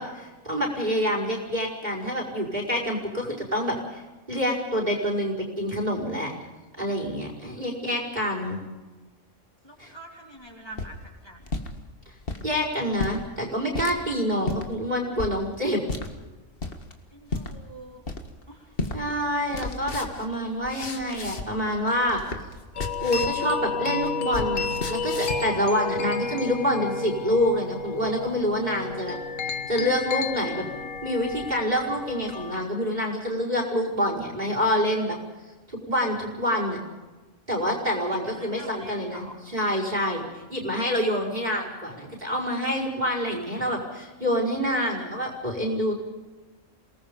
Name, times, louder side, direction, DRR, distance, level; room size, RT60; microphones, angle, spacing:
voice 1, 0.0-4.0 4.3-6.3 6.8-8.6 9.8-9.9 12.4-15.8 18.9-22.2 23.0-29.2 29.5-35.2 35.7-36.8 37.5-45.9, equal, 35° right, 1 dB, 5.4 m, -27 dB
voice 2, 9.6-11.6 17.1-18.0 18.5-18.7 38.1-39.4, right 1 dB, 20° left, -2 dB, 3.4 m, -45 dB
sound 1, 10.5-11.7 12.2-12.5 12.9-13.2 13.7-14.0 14.4-14.7 15.2-15.4 15.9-16.1 16.6-16.9 17.3-17.5 18.0-18.4 18.8-19.0 19.3-21.7 22.0-23.4 23.7-25.5, left 3 dB, 45° left, 2.0 m, -33 dB
sound 2, 22.8-32.6, left 4 dB, 80° left, 1.7 m, -32 dB
28.0 x 19.0 x 5.3 m, 1.2 s
omnidirectional pair, 1.3 m